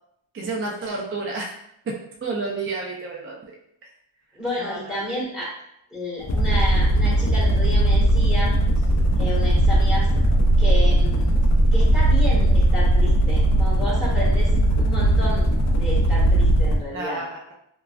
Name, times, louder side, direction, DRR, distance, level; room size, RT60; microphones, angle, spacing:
voice 1, 0.3-1.6 1.9-3.5 4.6-5.0 16.9-17.5, right 3 dB, 30° right, -2 dB, 0.4 m, -30 dB
voice 2, 4.3-5.5 5.9-8.6 9.2-10.1 10.6-11.3 11.7-14.5 14.8-15.5 15.7-17.2, left 1 dB, ahead, -8 dB, 1.2 m, -31 dB
sound 1, 6.2-16.8, right 1 dB, 40° left, 0.4 m, -18 dB
3.0 x 2.2 x 2.4 m, 0.76 s
wide cardioid pair, 120°, 48 cm